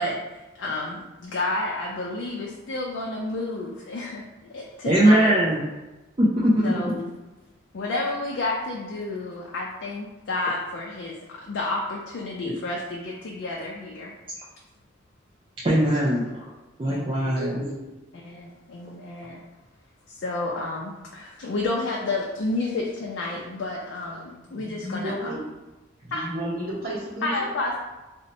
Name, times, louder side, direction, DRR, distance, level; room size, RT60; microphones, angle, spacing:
voice 1, 0.0-5.3 6.6-7.1 7.7-11.1 11.4-14.1 16.8-17.3 18.2-19.4 20.1-25.4 26.1-26.3 27.2-27.8, left 2 dB, 75° left, -2 dB, 0.4 m, -30 dB
voice 2, 4.8-5.6 6.2-7.0 12.4-12.5 15.6-16.3 16.8-17.6, right 1 dB, 25° right, -7 dB, 0.4 m, -20 dB
voice 3, 17.4-17.9 24.0-25.4 26.0-27.5, equal, 50° right, -7 dB, 1.1 m, -33 dB
2.6 x 2.1 x 4.0 m, 1.1 s
head